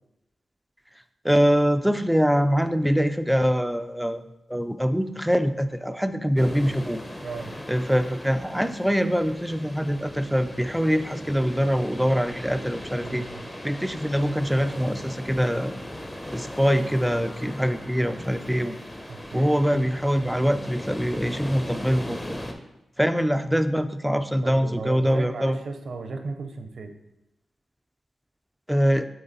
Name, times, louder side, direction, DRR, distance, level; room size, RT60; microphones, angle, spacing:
voice 1, 1.2-4.2 4.5-7.0 7.7-13.2 13.6-15.7 16.3-18.8 19.3-22.4 23.0-25.6 28.7-29.1, equal, 5° right, 10 dB, 0.4 m, -23 dB
sound 1, 6.3-22.5, left 1 dB, 15° left, 0.7 m, -38 dB
voice 2, 13.0-13.4 19.1-19.5 24.4-27.0, right 4 dB, 70° right, 7 dB, 0.6 m, -35 dB
7.7 x 3.4 x 4.1 m, 0.91 s
wide cardioid pair, 105°, 0 cm